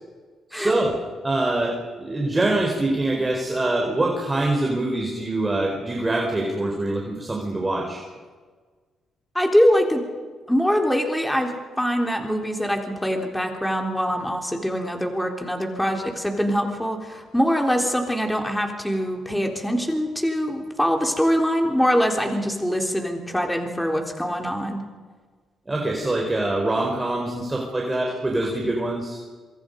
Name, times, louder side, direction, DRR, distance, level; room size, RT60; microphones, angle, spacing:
voice 1, 0.5-1.0 1.2-8.0 25.7-29.2, right 2 dB, 20° right, 0 dB, 4.3 m, -24 dB
voice 2, 9.4-10.0 10.5-24.8, equal, 5° left, 3 dB, 3.6 m, -23 dB
26.5 x 25.0 x 5.3 m, 1.5 s
cardioid pair, 90°, 0 cm